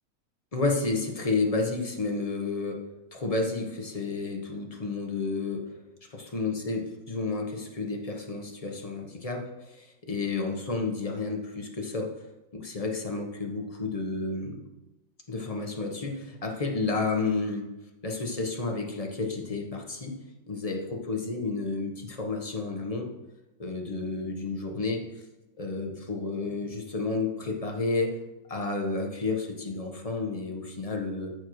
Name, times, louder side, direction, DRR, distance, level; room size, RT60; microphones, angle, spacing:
voice 1, 0.5-2.8 3.1-5.6 6.3-12.1 12.5-14.6 15.3-17.7 18.0-20.2 20.5-23.1 23.6-25.0 25.6-28.1 28.5-31.3, left 3 dB, 25° left, 1 dB, 1.1 m, -31 dB
13.5 x 6.5 x 3.2 m, 1.0 s
omnidirectional pair, 1.9 m